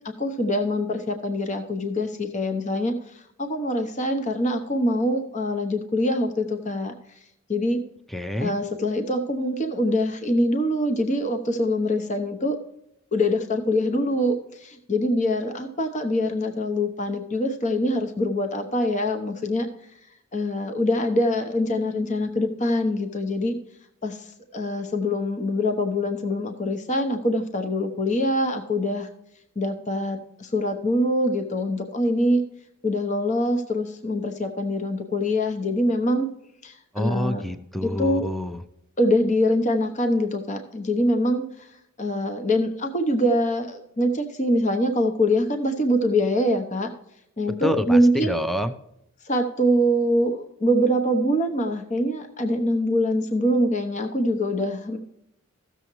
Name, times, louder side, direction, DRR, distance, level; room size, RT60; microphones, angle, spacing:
voice 1, 0.2-6.9 7.5-7.8 8.4-12.6 13.1-19.7 20.3-23.6 24.0-29.1 29.6-32.4 32.8-36.3 36.6-37.4 37.8-38.3 39.0-41.7 42.0-46.9 47.4-48.4 49.2-55.0, left 1 dB, 35° left, 6 dB, 0.9 m, -24 dB
voice 2, 8.1-8.5 36.9-38.6 47.6-48.8, equal, ahead, 8 dB, 0.5 m, -27 dB
15.5 x 7.0 x 3.1 m, 0.80 s
head